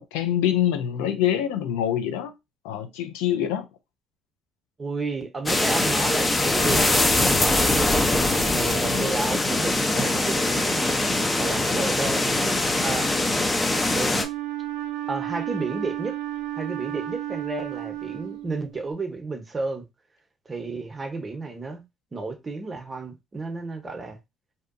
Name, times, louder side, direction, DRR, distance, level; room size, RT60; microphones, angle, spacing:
voice 1, 0.0-2.3 2.6-3.7, left 10 dB, 90° left, 0.4 m, -25 dB
voice 2, 4.8-8.1 8.5-10.9 11.4-13.4 13.9-14.2 15.1-16.2 16.6-19.9 20.5-21.8 22.1-24.2, right 3 dB, 30° right, 0.8 m, -32 dB
sound 1, 5.5-14.2, left 2 dB, 20° left, 0.5 m, -22 dB
Wind instrument woodwind instrument, 14.1-18.9, right 13 dB, 90° right, 0.4 m, -33 dB
2.7 x 2.2 x 2.5 m
supercardioid pair, 70°, 0 cm